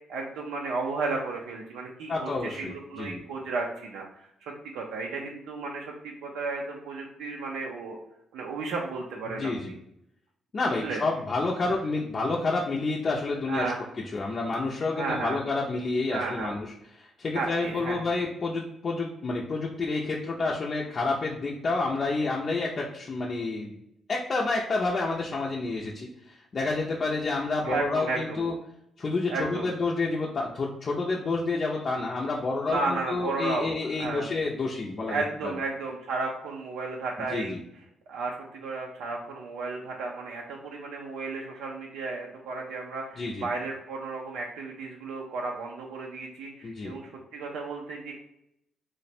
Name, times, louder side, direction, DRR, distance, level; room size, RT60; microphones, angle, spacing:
voice 1, 0.1-8.0 8.3-9.7 10.8-11.0 11.6-11.7 13.5-13.8 14.9-15.4 16.1-16.6 17.3-18.0 27.6-28.4 29.3-29.7 32.6-34.3 35.1-37.5 38.1-48.1, right 3 dB, 90° right, -1 dB, 0.4 m, -33 dB
voice 2, 2.1-3.2 9.3-9.7 10.5-13.7 14.1-16.7 17.0-23.7 24.1-28.6 29.0-35.5 37.2-37.6 43.2-43.5 46.6-46.9, left 3 dB, 45° left, -3 dB, 0.5 m, -29 dB
3.1 x 2.1 x 4.2 m, 0.78 s
cardioid pair, 90°, 0 cm